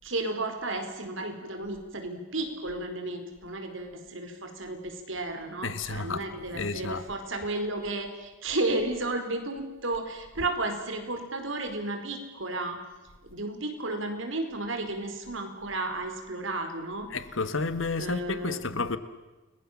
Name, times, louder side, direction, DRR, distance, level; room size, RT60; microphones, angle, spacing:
voice 1, 0.0-12.8 13.3-17.1 18.0-18.7, right 2 dB, 80° right, 4.6 m, -33 dB
voice 2, 5.6-7.0 10.4-10.5 17.1-19.0, left 3 dB, 80° left, 1.5 m, -31 dB
29.5 x 21.5 x 7.4 m
head